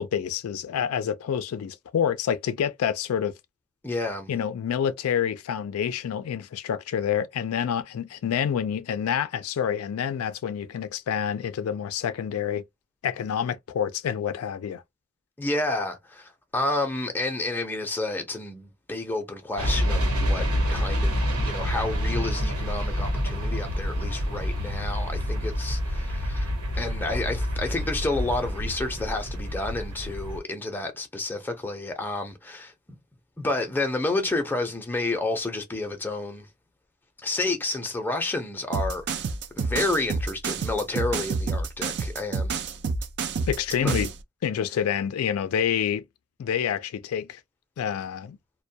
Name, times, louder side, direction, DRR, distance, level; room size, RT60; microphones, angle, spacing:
voice 1, 0.0-3.3 4.3-12.6 13.0-14.8 43.5-44.1 44.4-46.0 46.4-47.4 47.8-48.4, left 8 dB, 75° left, 0.3 m, -27 dB
voice 2, 3.8-4.3 15.4-33.0 33.4-36.5 37.2-42.5 43.8-44.0, left 2 dB, 10° left, 0.6 m, -30 dB
sound 1, 19.6-30.4, equal, 85° right, 1.1 m, -27 dB
sound 2, 38.7-44.2, right 4 dB, 50° right, 0.4 m, -28 dB
2.2 x 2.1 x 2.7 m
head